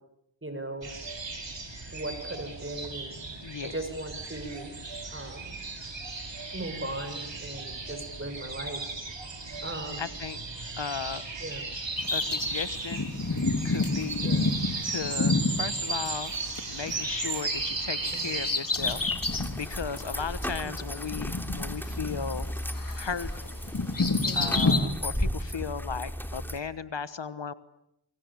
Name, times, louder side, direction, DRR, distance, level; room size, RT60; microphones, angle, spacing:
voice 1, 0.4-0.9 1.9-3.2 3.6-4.8 5.1-5.6 6.5-8.8 9.6-10.0 11.4-11.6 14.2-14.5 18.1-18.4 20.6-20.7 24.2-24.6, right 1 dB, 25° right, 8 dB, 6.4 m, -38 dB
sound 1, 0.8-18.5, right 3 dB, 75° right, 5.2 m, -36 dB
voice 2, 3.4-3.7 9.6-9.7 10.0-10.4 10.8-11.2 12.1-13.1 13.6-14.3 14.8-16.3 16.7-19.0 19.5-22.5 22.9-23.3 24.3-27.5, left 6 dB, 70° left, 14 dB, 1.3 m, -36 dB
Bird vocalization bird call bird song, 12.0-16.6 16.9-19.6 20.0-20.1 21.0-22.5 22.8-24.8, left 3 dB, 45° left, 3.3 m, -29 dB
sound 2, 18.7-26.6, equal, 5° left, 3.1 m, -35 dB
27.5 x 24.0 x 8.7 m, 0.79 s
wide cardioid pair, 45°, 45 cm